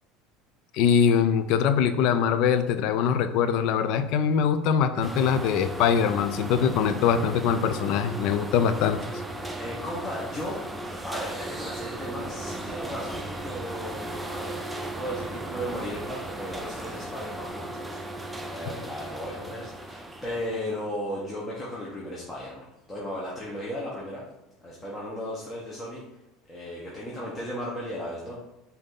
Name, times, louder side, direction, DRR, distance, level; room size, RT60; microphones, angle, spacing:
voice 1, 0.7-9.0, left 7 dB, 65° left, 11 dB, 0.4 m, -23 dB
sound 1, 5.0-20.8, right 1 dB, 10° right, 0.6 m, -36 dB
voice 2, 9.6-10.6 11.0-18.0 18.5-24.2 24.6-26.0 26.5-28.4, equal, 20° left, -5 dB, 1.0 m, -36 dB
5.1 x 2.7 x 3.8 m, 0.94 s
supercardioid pair, 90°, 0 cm